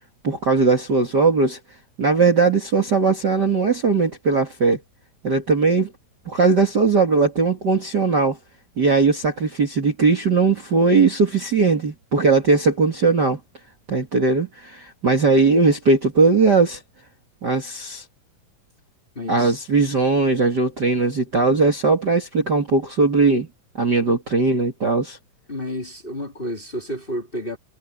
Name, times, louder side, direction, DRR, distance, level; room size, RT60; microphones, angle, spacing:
voice 1, 0.2-1.6 2.0-4.8 5.2-5.9 6.3-8.4 8.8-13.4 13.9-16.8 17.4-18.0 19.3-23.5 23.8-25.2, right 4 dB, 35° right, 2.3 m, -19 dB
voice 2, 19.1-19.6 21.5-21.6 24.0-24.1 25.5-27.6, left 1 dB, 15° left, 2.8 m, -31 dB
omnidirectional pair, 3.9 m